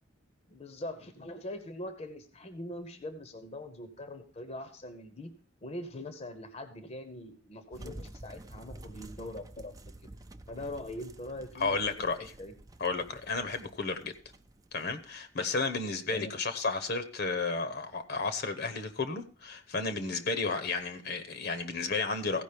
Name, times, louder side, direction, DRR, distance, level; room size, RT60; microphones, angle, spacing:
voice 1, 0.5-5.3 5.6-9.7 10.5-12.5 15.4-15.5 16.1-16.3, left 1 dB, 35° left, 9 dB, 0.8 m, -42 dB
sound 1, 7.7-15.3, right 1 dB, 20° right, 0.5 m, -50 dB
voice 2, 11.5-12.3 12.8-14.1 14.7-22.4, left 4 dB, 60° left, 9 dB, 1.0 m, -32 dB
15.5 x 5.1 x 5.1 m, 0.39 s
head